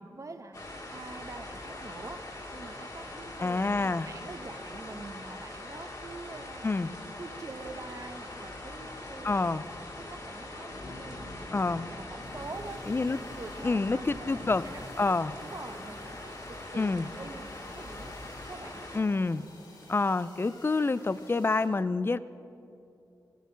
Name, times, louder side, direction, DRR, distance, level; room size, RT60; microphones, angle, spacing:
voice 1, 0.0-6.7 7.2-9.5 10.0-11.4 11.8-15.1 15.4-18.8, right 3 dB, 45° right, 7 dB, 1.1 m, -45 dB
sound 1, 0.5-19.0, left 2 dB, 50° left, 2.2 m, -42 dB
voice 2, 3.4-4.1 6.6-6.9 9.2-9.6 11.5-11.9 12.9-13.2 13.6-14.6 15.0-15.3 16.8-17.1 18.9-19.5 19.9-22.2, left 3 dB, 30° left, 16 dB, 0.5 m, -27 dB
sound 2, 12.2-21.7, left 1 dB, 65° left, 3.2 m, -53 dB
17.5 x 9.2 x 6.3 m, 2.8 s
cardioid pair, 55°, 8 cm